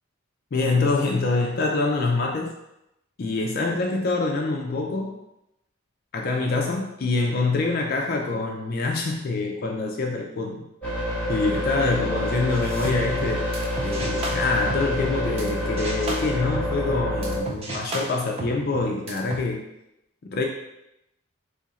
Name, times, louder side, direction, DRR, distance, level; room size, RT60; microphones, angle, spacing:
voice 1, 0.5-2.5 3.2-5.2 6.1-10.6 11.3-13.4 13.8-19.6 20.2-20.5, left 3 dB, 45° left, 1 dB, 0.3 m, -25 dB
sound 1, 10.8-17.4, left 1 dB, 5° left, 0.8 m, -27 dB
sound 2, 12.5-15.5 15.8-19.4, right 2 dB, 30° right, 0.4 m, -34 dB
2.8 x 2.5 x 4.0 m, 0.86 s
head